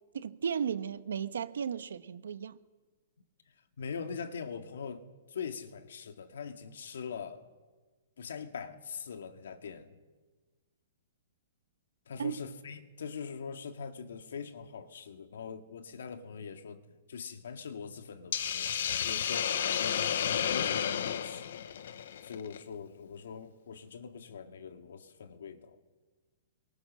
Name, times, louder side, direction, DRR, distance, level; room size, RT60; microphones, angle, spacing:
voice 1, 0.1-2.6 12.2-12.4, right 7 dB, 90° right, 1.3 m, -35 dB
voice 2, 3.5-7.4 8.2-10.0 12.1-18.7 19.0-21.5 22.2-25.8, left 6 dB, 70° left, 2.2 m, -42 dB
Hiss, 18.3-22.6, left 9 dB, 55° left, 1.1 m, -32 dB
26.0 x 23.5 x 6.3 m
hypercardioid pair, 180°, 0 cm